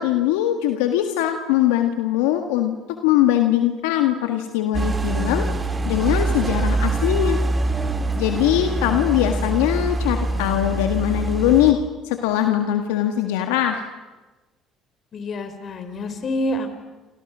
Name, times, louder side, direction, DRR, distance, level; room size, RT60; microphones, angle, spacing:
voice 1, 0.0-2.8 3.0-5.5 5.9-7.4 8.2-13.9, left 12 dB, 85° left, 6 dB, 1.6 m, -21 dB
sound 1, 4.7-11.7, right 2 dB, 25° right, 3.1 m, -24 dB
voice 2, 15.1-16.7, left 1 dB, 50° left, 9 dB, 4.4 m, -27 dB
28.5 x 27.5 x 6.2 m, 1.2 s
supercardioid pair, 70°, 0 cm